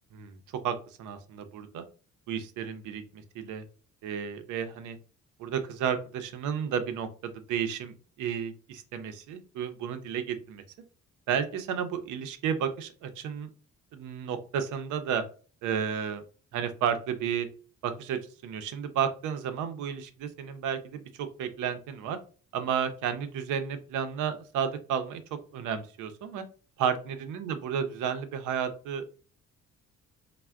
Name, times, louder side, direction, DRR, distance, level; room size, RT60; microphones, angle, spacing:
voice 1, 0.6-1.8 2.3-3.6 4.0-5.0 5.4-10.6 11.3-13.5 13.9-15.2 15.6-16.2 16.5-17.5 17.8-21.0 21.4-22.2 22.5-25.2 25.5-26.4 26.8-29.1, right 8 dB, 80° right, 9 dB, 0.5 m, -32 dB
3.3 x 2.0 x 2.3 m, 0.39 s
cardioid pair, 90°, 30 cm